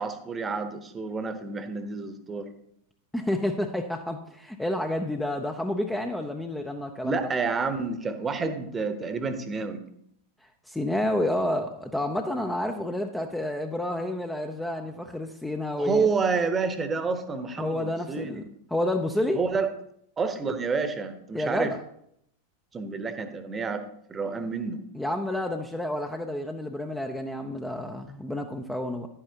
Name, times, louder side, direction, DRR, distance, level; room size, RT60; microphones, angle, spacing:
voice 1, 0.0-2.5 7.0-9.8 15.8-18.4 19.3-19.7 20.2-21.7 22.7-23.8 24.1-24.8, right 4 dB, 20° right, 9 dB, 1.0 m, -29 dB
voice 2, 3.1-7.2 10.4-16.1 17.6-18.4 18.7-19.4 21.3-21.8 24.9-29.1, left 1 dB, 5° left, 4 dB, 0.6 m, -29 dB
10.5 x 8.8 x 2.9 m, 0.73 s
figure-of-eight pair, 90°, 0 cm